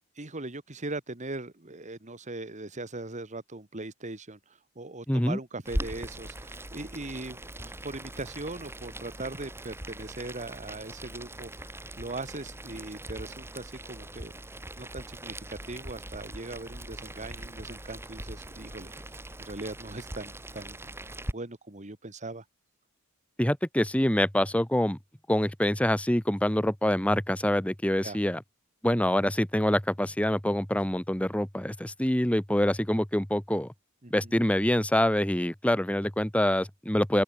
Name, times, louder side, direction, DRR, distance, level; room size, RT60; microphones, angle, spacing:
voice 1, 0.1-11.5 12.0-14.3 14.8-18.9 19.4-20.8 21.3-22.4 28.0-28.2 34.0-34.3, right 2 dB, 35° right, 1.8 m, -40 dB
voice 2, 5.1-5.4 23.4-25.0 25.3-28.4 28.8-33.7 34.1-37.2, left 1 dB, 5° left, 1.1 m, -25 dB
Boiling, 5.6-21.3, right 1 dB, 10° right, 2.8 m, -40 dB
open air
head